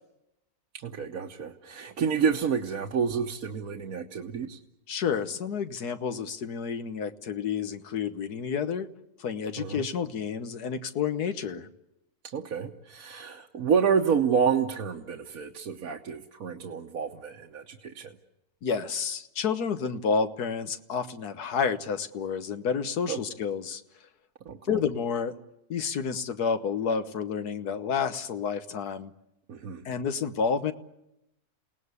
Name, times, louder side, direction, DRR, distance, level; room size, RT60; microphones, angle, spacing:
voice 1, 0.7-4.6 9.6-9.8 12.3-18.1 23.1-23.2 24.4-24.8 29.5-29.8, right 6 dB, 65° right, 1 dB, 1.5 m, -29 dB
voice 2, 4.9-8.9 9.2-11.7 18.6-23.8 24.7-25.3 25.7-29.1 29.8-30.7, left 6 dB, 85° left, 10 dB, 1.7 m, -30 dB
29.0 x 18.5 x 8.2 m, 0.88 s
omnidirectional pair, 1.6 m